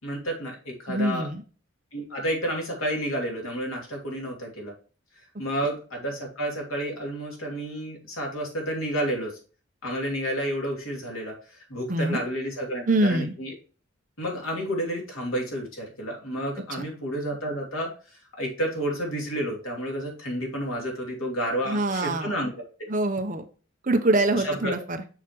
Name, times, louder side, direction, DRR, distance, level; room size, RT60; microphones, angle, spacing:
voice 1, 0.0-1.3 1.9-4.7 5.4-9.4 9.8-13.5 14.2-17.9 18.4-22.6 24.3-24.7, equal, 90° left, -1 dB, 2.8 m, -30 dB
voice 2, 0.9-1.4 11.9-12.2 12.9-13.3 21.7-22.3 22.9-23.4 23.8-25.0, right 2 dB, 40° right, 6 dB, 0.8 m, -24 dB
6.5 x 6.0 x 3.0 m, 0.38 s
head